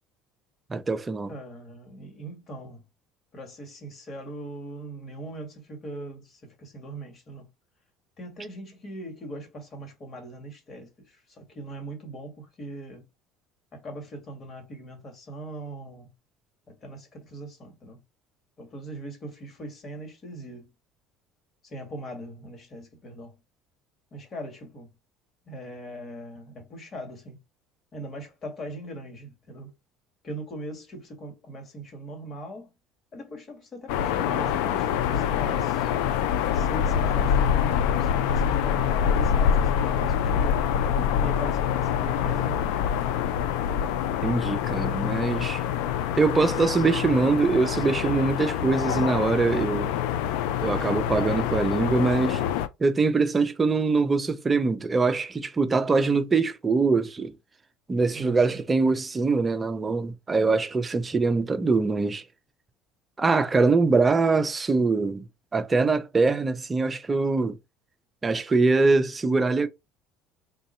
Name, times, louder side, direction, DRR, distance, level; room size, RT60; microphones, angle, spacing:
voice 1, 0.7-1.3 44.2-45.6 46.2-49.9 50.6-52.4 52.8-57.3 57.9-62.2 63.2-65.2 65.5-67.6 68.2-69.7, right 3 dB, 20° right, 0.5 m, -23 dB
voice 2, 1.3-2.8 3.3-7.5 8.2-13.1 13.7-16.1 16.7-18.0 18.6-20.7 21.6-23.4 24.1-24.9 25.4-27.4 27.9-29.7 30.2-32.7 33.1-35.9 36.5-40.7 41.2-43.0 50.7-51.0 58.1-58.6, right 1 dB, 35° left, 1.6 m, -40 dB
sound 1, 33.9-52.7, left 8 dB, 80° left, 0.4 m, -25 dB
3.7 x 2.2 x 4.2 m
supercardioid pair, 105°, 0 cm